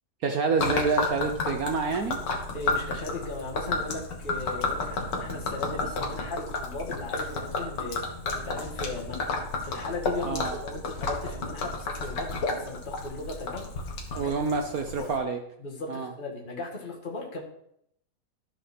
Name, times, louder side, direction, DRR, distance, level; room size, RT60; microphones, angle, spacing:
voice 1, 0.2-2.2 10.3-10.6 14.1-15.4 15.9-16.1, right 4 dB, 60° right, 4 dB, 1.2 m, -27 dB
Gurgling / Liquid, 0.6-15.2, left 3 dB, 80° left, 2.2 m, -32 dB
voice 2, 2.5-9.3 9.6-13.7 14.1-14.3 15.0-15.1 15.6-17.4, left 3 dB, 30° left, -2 dB, 2.1 m, -37 dB
13.0 x 5.3 x 6.0 m, 0.75 s
omnidirectional pair, 1.9 m